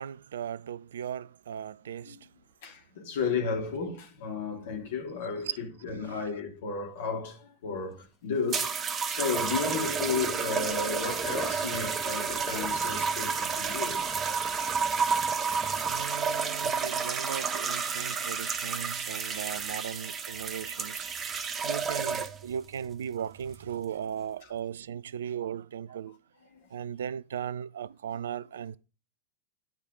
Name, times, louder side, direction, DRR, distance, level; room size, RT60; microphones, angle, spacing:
voice 1, 0.0-2.3 5.5-5.6 6.1-6.2 15.9-21.1 21.5-26.2 26.7-28.8, right 9 dB, 65° right, 0.4 m, -37 dB
voice 2, 2.6-14.0 16.6-16.7 26.5-26.7, left 5 dB, 55° left, 3.0 m, -33 dB
sound 1, 8.5-22.5 23.4-23.7, right 5 dB, 25° right, 1.0 m, -31 dB
12.0 x 4.9 x 5.3 m
figure-of-eight pair, 90°, 0 cm